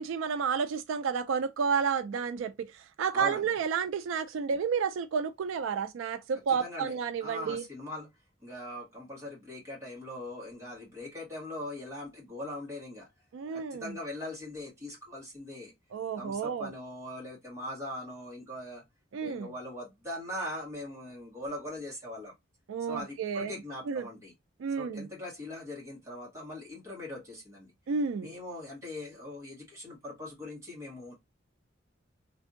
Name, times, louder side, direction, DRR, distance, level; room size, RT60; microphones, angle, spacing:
voice 1, 0.0-2.5 3.0-7.6 13.3-13.9 15.9-16.7 19.1-19.5 22.7-23.6 23.9-24.0 24.6-25.1 27.9-28.3, right 6 dB, 80° right, 0.3 m, -31 dB
voice 2, 3.1-3.5 6.5-8.1 8.4-13.1 13.5-15.7 16.2-18.8 19.2-22.3 22.9-24.3 24.8-27.7 28.2-31.1, left 1 dB, 15° right, 1.5 m, -41 dB
3.4 x 2.6 x 2.5 m
head